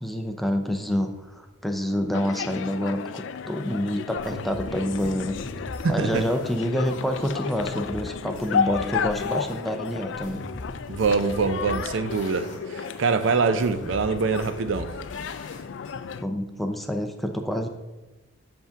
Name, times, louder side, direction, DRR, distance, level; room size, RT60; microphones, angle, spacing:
voice 1, 0.0-5.4 5.9-10.4 16.2-17.7, equal, ahead, 0.5 m, -27 dB
sound 1, 2.1-16.2, left 6 dB, 65° left, 0.3 m, -33 dB
sound 2, 4.2-9.6 9.8-12.6 12.8-15.9, left 1 dB, 40° left, 1.6 m, -41 dB
voice 2, 5.8-6.2 10.9-14.9, right 4 dB, 65° right, 0.4 m, -24 dB
8.1 x 3.6 x 5.7 m
head